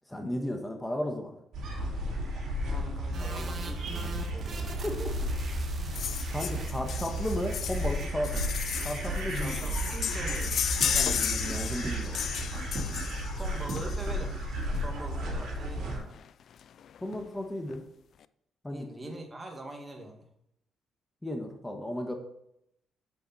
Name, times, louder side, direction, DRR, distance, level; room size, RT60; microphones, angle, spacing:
voice 1, 0.1-1.4 4.7-5.2 5.8-8.5 8.8-9.5 10.9-12.2 17.0-17.8 18.6-18.9 21.2-22.1, left 1 dB, 10° left, 4 dB, 1.3 m, -34 dB
sound 1, 1.5-16.0, right 1 dB, 70° right, 2.9 m, -33 dB
voice 2, 2.6-4.7 9.3-10.6 13.4-14.4 14.8-16.2 18.7-20.3, right 1 dB, 20° right, 2 dB, 1.8 m, -43 dB
sound 2, 3.1-8.1, right 4 dB, 45° right, 1.3 m, -45 dB
sound 3, 5.9-14.3 15.4-15.5 15.8-15.9 16.1-16.3 16.6-17.2 17.7-17.8, left 9 dB, 60° left, 0.3 m, -34 dB
7.9 x 7.1 x 4.2 m, 0.78 s
cardioid pair, 90°, 0 cm